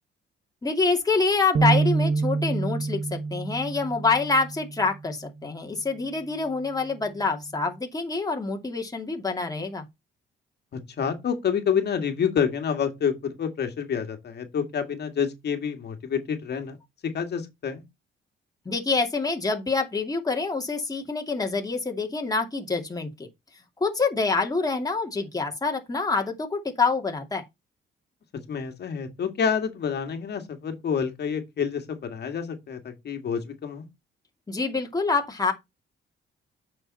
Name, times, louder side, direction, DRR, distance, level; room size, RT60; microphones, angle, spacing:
voice 1, 0.6-9.8 18.7-23.3 23.8-27.4 34.5-35.5, left 4 dB, 20° left, 2.4 m, -26 dB
sound 1, 1.5-5.1, right 4 dB, 50° right, 1.1 m, -26 dB
voice 2, 11.0-16.8 17.1-17.8 28.5-33.9, left 7 dB, 55° left, 2.1 m, -28 dB
8.8 x 6.4 x 4.2 m
cardioid pair, 90°, 20 cm